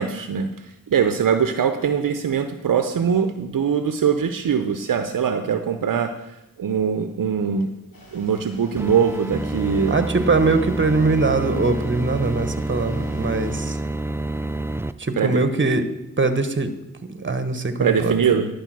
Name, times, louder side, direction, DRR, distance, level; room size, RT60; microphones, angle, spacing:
voice 1, 0.0-6.1 6.6-7.7 8.1-10.0 15.2-15.5 17.8-18.5, right 7 dB, 65° right, 8 dB, 0.7 m, -22 dB
sound 1, 7.9-13.6, left 1 dB, 85° left, 2.1 m, -47 dB
sound 2, 8.8-14.9, right 2 dB, 10° right, 0.4 m, -28 dB
voice 2, 9.9-13.8 15.0-15.9 16.2-16.7 17.0-18.1, right 3 dB, 35° right, 10 dB, 1.1 m, -22 dB
11.0 x 4.9 x 6.1 m, 0.91 s
cardioid pair, 45°, 35 cm